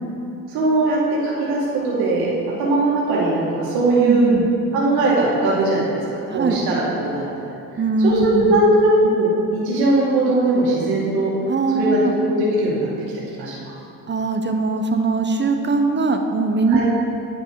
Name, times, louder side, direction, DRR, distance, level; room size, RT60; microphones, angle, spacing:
voice 1, 0.5-2.3 2.6-4.3 4.7-7.3 8.0-11.3 11.7-12.0 12.3-12.9 13.3-13.7 16.7-16.8, right 2 dB, 80° right, -5 dB, 2.1 m, -19 dB
voice 2, 4.0-4.5 6.3-6.6 7.8-8.6 11.5-12.2 14.1-16.8, right 3 dB, 30° right, 5 dB, 0.9 m, -21 dB
10.5 x 5.5 x 4.8 m, 2.6 s
supercardioid pair, 65°, 37 cm